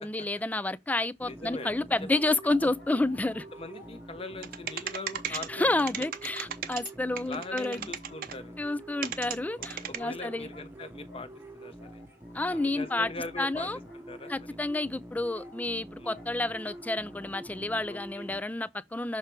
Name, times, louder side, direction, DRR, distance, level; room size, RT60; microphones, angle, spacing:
voice 1, 0.0-3.5 5.3-7.9 8.6-10.5 12.3-13.1 13.4-13.8 14.3-19.2, left 2 dB, 10° left, 0.3 m, -30 dB
voice 2, 1.2-1.7 2.0-2.2 2.6-2.7 3.5-6.0 7.3-8.5 9.6-11.3 11.5-12.0 12.5-13.7 13.9-14.3 16.0-16.2 17.9-18.3, left 2 dB, 35° left, 0.9 m, -41 dB
sound 1, 1.2-18.4, right 1 dB, 10° right, 0.8 m, -46 dB
sound 2, 2.5-5.3 5.7-7.0 7.4-14.8 15.3-17.9, left 3 dB, 80° left, 1.5 m, -57 dB
sound 3, 4.4-5.5 5.8-6.9 7.2-8.3 9.0-9.4 9.6-10.0, right 9 dB, 55° right, 0.7 m, -35 dB
6.6 x 3.3 x 4.4 m
head